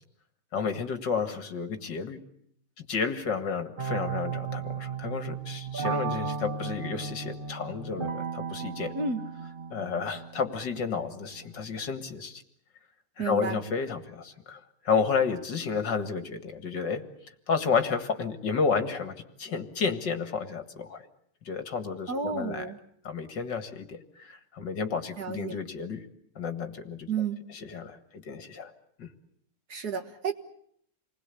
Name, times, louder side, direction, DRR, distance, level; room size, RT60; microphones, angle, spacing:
voice 1, 0.5-2.2 2.8-8.9 9.7-12.4 13.2-17.0 17.5-21.1 21.4-22.7 23.0-26.1 26.4-28.7 29.0-29.1, left 5 dB, 55° left, 9 dB, 2.4 m, -31 dB
sound 1, 3.8-12.0, right 5 dB, 30° right, 1.2 m, -35 dB
voice 2, 13.2-13.6 22.1-22.8 25.2-25.6 27.1-27.4 29.7-30.3, right 5 dB, 50° right, 7 dB, 1.9 m, -31 dB
28.5 x 20.5 x 8.4 m, 0.66 s
omnidirectional pair, 2.4 m